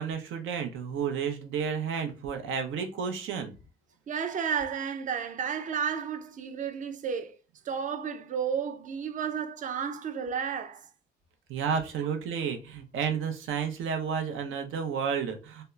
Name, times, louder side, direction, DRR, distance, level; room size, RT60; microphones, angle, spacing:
voice 1, 0.0-3.5 11.5-15.6, right 6 dB, 80° right, 0.6 m, -31 dB
voice 2, 4.1-7.3 7.7-10.9, right 7 dB, 40° right, 0.4 m, -32 dB
2.7 x 2.1 x 2.2 m
cardioid pair, 90°, 20 cm